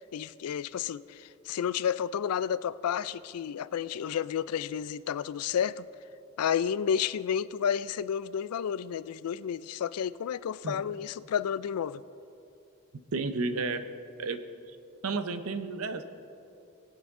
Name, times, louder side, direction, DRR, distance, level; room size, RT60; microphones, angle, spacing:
voice 1, 0.1-5.9 6.4-12.0, left 8 dB, 80° left, 17 dB, 0.4 m, -31 dB
voice 2, 13.1-13.8 14.2-14.4 15.0-16.0, right 3 dB, 70° right, 9 dB, 0.7 m, -31 dB
21.5 x 8.3 x 3.7 m, 2.8 s
head